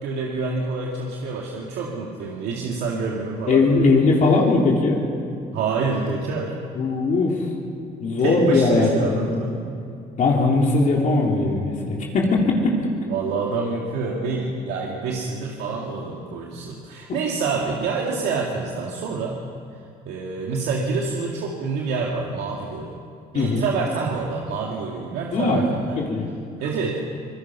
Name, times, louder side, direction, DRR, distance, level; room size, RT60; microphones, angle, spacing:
voice 1, 0.0-3.9 5.5-6.5 8.2-9.6 13.1-19.4 20.1-22.9 23.3-26.0 26.6-27.0, right 4 dB, 80° right, -2 dB, 2.3 m, -27 dB
voice 2, 3.5-5.0 6.7-7.5 8.0-9.5 10.2-12.7 23.3-23.7 25.3-25.6 25.9-26.3, left 3 dB, 50° left, -1 dB, 3.4 m, -19 dB
25.0 x 19.5 x 5.7 m, 2.5 s
cardioid pair, 110°, 17 cm